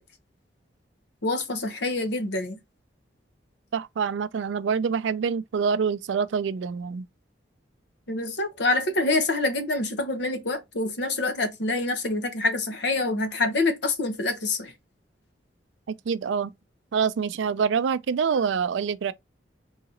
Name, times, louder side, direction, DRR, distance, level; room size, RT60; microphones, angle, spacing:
voice 1, 1.2-2.6 8.1-14.7, left 2 dB, 65° left, 1.0 m, -26 dB
voice 2, 3.7-7.1 15.9-16.5 16.9-19.1, right 6 dB, 80° right, 0.4 m, -26 dB
4.0 x 2.8 x 3.8 m
head